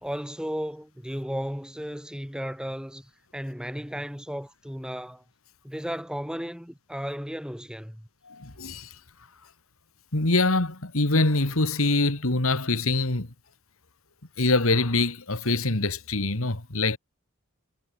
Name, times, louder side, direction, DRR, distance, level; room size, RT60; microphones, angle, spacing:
voice 1, 0.0-5.2 5.6-8.1, equal, 5° right, 4.3 m, -34 dB
voice 2, 8.3-8.9 10.1-13.3 14.4-17.0, left 2 dB, 80° left, 2.4 m, -24 dB
head